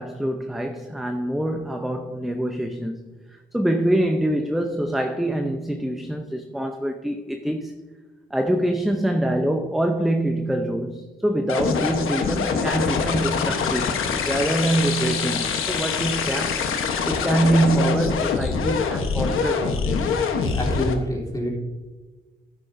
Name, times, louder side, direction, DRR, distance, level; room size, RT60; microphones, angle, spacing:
voice 1, 0.0-3.1 3.5-7.8 8.3-16.7 17.0-20.1, right 1 dB, ahead, 0.6 m, -25 dB
sound 1, 11.5-21.0, left 5 dB, 85° left, 1.1 m, -24 dB
voice 2, 20.5-21.5, equal, 15° left, 3.1 m, -26 dB
13.0 x 9.9 x 2.6 m
cardioid pair, 90°, 21 cm